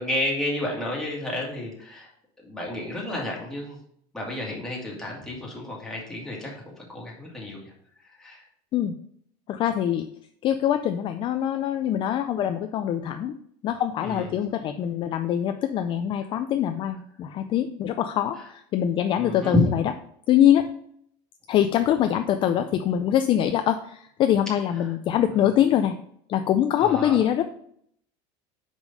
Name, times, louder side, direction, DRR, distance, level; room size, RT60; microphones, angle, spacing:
voice 1, 0.0-2.1 2.4-3.8 4.1-7.7 8.0-8.4 14.0-14.3 19.2-19.6 26.8-27.2, left 1 dB, 5° left, -3 dB, 2.0 m, -31 dB
voice 2, 9.5-10.1 10.4-13.3 13.6-19.8 20.3-20.7 21.5-26.0 26.3-27.4, left 10 dB, 35° left, 8 dB, 0.4 m, -23 dB
5.2 x 4.8 x 5.3 m, 0.67 s
cardioid pair, 145°, 14 cm